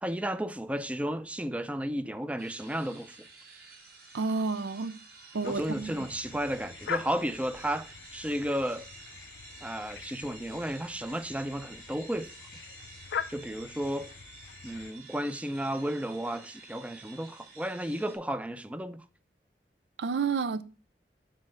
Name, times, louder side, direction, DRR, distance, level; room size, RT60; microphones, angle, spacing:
voice 1, 0.0-3.2 5.4-8.9 9.6-12.3 13.3-14.1 14.6-19.0, equal, 5° right, 0.4 m, -33 dB
sound 1, 2.4-18.2, right 4 dB, 55° right, 3.2 m, -51 dB
voice 2, 4.1-4.9 5.3-5.9 20.0-20.6, right 4 dB, 80° right, 0.5 m, -30 dB
sound 2, 5.4-14.9, left 7 dB, 80° left, 0.5 m, -43 dB
7.6 x 4.3 x 6.0 m
head